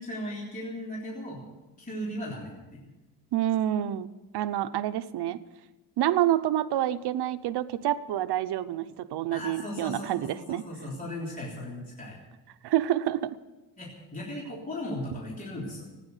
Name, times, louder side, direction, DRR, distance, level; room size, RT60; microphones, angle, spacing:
voice 1, 0.0-1.5 1.8-2.9 9.3-12.2 13.8-15.8, left 1 dB, 20° left, -5 dB, 3.6 m, -37 dB
voice 2, 3.3-5.4 6.0-10.6 12.6-13.3, right 12 dB, 80° right, 12 dB, 0.8 m, -28 dB
16.5 x 9.9 x 8.1 m, 1.1 s
cardioid pair, 145°, 39 cm